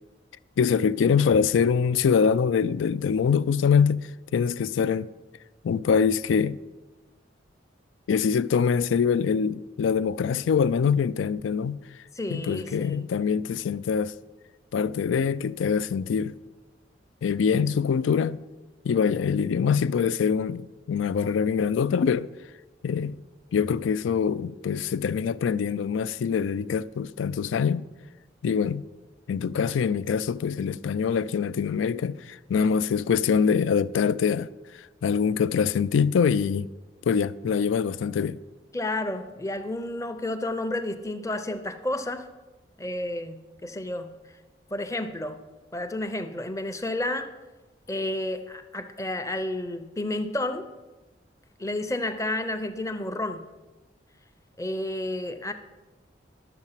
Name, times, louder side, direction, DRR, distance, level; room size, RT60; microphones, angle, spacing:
voice 1, 0.6-5.1 5.6-6.6 8.1-11.8 12.3-14.1 14.7-16.3 17.2-18.4 18.8-22.3 22.8-23.2 23.5-27.9 28.4-28.8 29.3-34.5 35.0-36.7 37.1-38.4, left 6 dB, 90° left, 0.3 m, -24 dB
voice 2, 12.1-13.1 38.7-42.3 42.8-44.1 44.7-45.4 45.7-47.3 47.9-50.7 51.6-53.5 54.6-55.5, left 1 dB, 15° left, 0.6 m, -31 dB
12.0 x 7.3 x 5.7 m
head